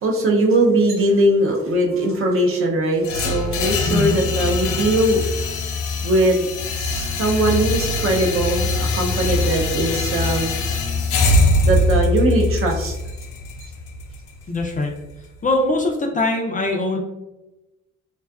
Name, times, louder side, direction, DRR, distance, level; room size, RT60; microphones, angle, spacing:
voice 1, 0.0-5.3 6.0-6.5 6.8-10.5 11.6-12.9, right 1 dB, 45° right, 1 dB, 0.6 m, -20 dB
sound 1, 3.0-15.1, left 2 dB, 85° left, 0.5 m, -22 dB
voice 2, 3.8-4.2 14.5-14.9 15.4-17.0, left 2 dB, 25° left, 2 dB, 0.4 m, -21 dB
2.6 x 2.2 x 2.3 m, 1.0 s
cardioid pair, 90°, 30 cm